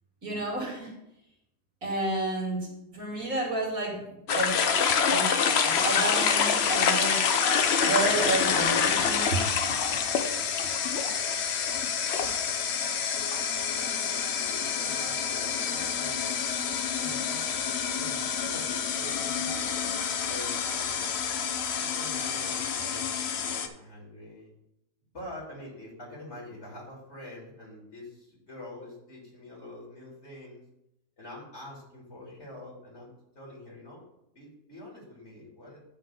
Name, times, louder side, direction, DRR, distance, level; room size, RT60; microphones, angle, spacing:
voice 1, 0.2-0.9 1.8-4.0 4.3-4.6 5.1-7.2 7.8-9.4, right 2 dB, 60° right, -1 dB, 2.8 m, -31 dB
sound 1, 4.3-23.7, left 6 dB, 55° left, 0.7 m, -27 dB
voice 2, 13.7-16.3 16.9-21.1 21.8-24.5 25.1-30.6 31.2-34.0 34.3-35.9, left 1 dB, 40° left, -4 dB, 3.3 m, -45 dB
10.0 x 3.7 x 6.8 m, 0.85 s
omnidirectional pair, 1.8 m